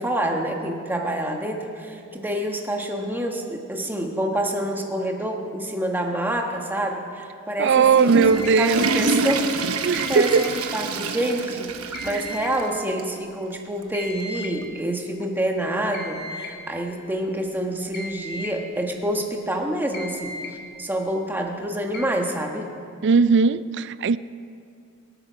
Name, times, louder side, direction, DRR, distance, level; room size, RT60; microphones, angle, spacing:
voice 1, 0.0-8.1 8.6-10.5 10.7-20.4 20.8-22.7, right 1 dB, 10° right, 1.4 m, -27 dB
voice 2, 7.6-8.9 9.8-10.5 12.1-12.2 23.0-24.2, right 5 dB, 55° right, 0.4 m, -19 dB
Water / Toilet flush, 7.7-12.7 13.0-13.1 13.8-13.9 15.2-15.3, right 3 dB, 80° right, 1.0 m, -27 dB
sound 1, 8.1-8.6 9.9-10.6 11.9-12.6 13.9-14.6 15.9-16.6 17.9-18.6 19.9-20.6 21.9-22.0, left 2 dB, 45° left, 1.9 m, -36 dB
24.5 x 8.9 x 5.7 m
head